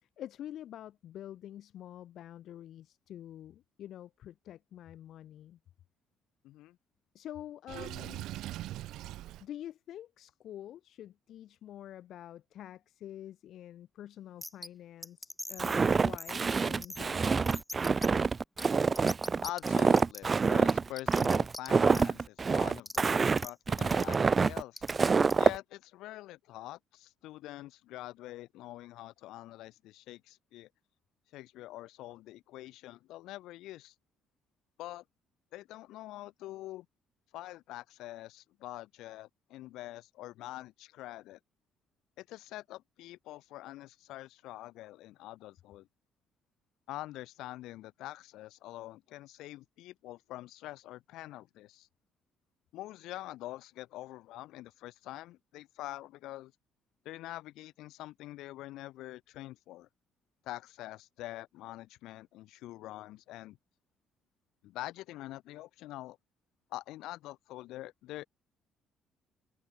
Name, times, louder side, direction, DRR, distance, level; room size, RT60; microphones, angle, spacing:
voice 1, 0.0-5.6 7.1-8.2 9.4-17.5, left 11 dB, 60° left, 3.4 m, -47 dB
voice 2, 6.4-6.8 19.4-24.8 25.4-30.7 31.3-33.9 34.8-35.0 35.5-36.9 37.3-41.4 42.2-45.9 46.9-51.9 52.7-56.5 57.1-59.9 60.4-63.6 64.6-66.2 66.7-68.3, left 16 dB, 80° left, 7.1 m, -45 dB
Water / Sink (filling or washing), 7.7-9.4, right 15 dB, 75° right, 0.9 m, -41 dB
sound 1, 14.4-14.7 15.0-15.7 16.2-16.4 16.8-17.0 17.5-18.1 18.6-18.7 18.9-20.2 20.7-21.7 21.9-22.0 22.9-23.0 23.4-23.5 23.8-24.2 24.8-25.3, left 1 dB, 5° left, 4.0 m, -42 dB
Walk footsteps, 15.6-25.6, right 5 dB, 25° right, 0.4 m, -26 dB
open air
cardioid pair, 150°, 0 cm